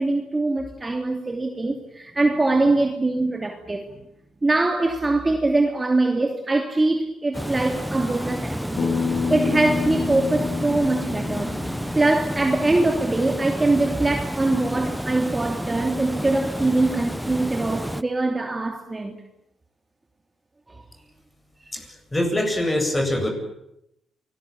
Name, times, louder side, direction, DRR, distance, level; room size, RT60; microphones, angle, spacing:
voice 1, 0.0-4.0 4.4-9.0 9.3-11.6 11.9-19.2 20.7-20.8, right 2 dB, 20° right, 2.9 m, -23 dB
Water, 7.3-18.0, equal, ahead, 1.0 m, -30 dB
Bass guitar, 8.8-13.0, left 5 dB, 55° left, 3.9 m, -28 dB
voice 2, 21.7-23.3, left 1 dB, 15° left, 8.0 m, -24 dB
28.0 x 20.0 x 9.0 m
cardioid pair, 90°, 0 cm